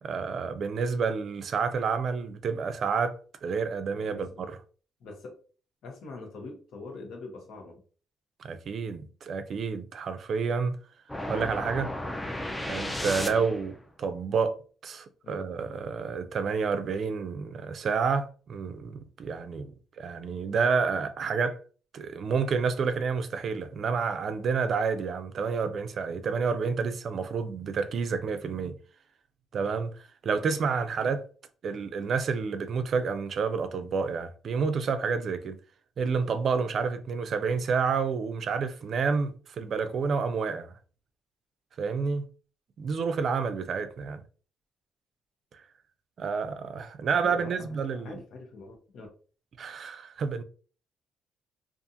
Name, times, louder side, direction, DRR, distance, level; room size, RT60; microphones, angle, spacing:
voice 1, 0.0-4.6 8.4-10.8 11.3-11.9 12.7-14.5 14.8-21.6 21.9-28.8 29.5-31.2 31.6-35.6 36.0-40.7 41.8-42.2 42.8-44.2 46.2-48.2 49.6-50.4, right 5 dB, 55° right, 0.4 m, -29 dB
voice 2, 3.9-4.4 5.0-5.4 5.8-7.8 15.2-15.4 47.2-49.1, left 3 dB, 75° left, 0.9 m, -44 dB
sound 1, 11.1-13.8, left 1 dB, 10° left, 0.4 m, -34 dB
2.4 x 2.4 x 2.6 m
cardioid pair, 90°, 0 cm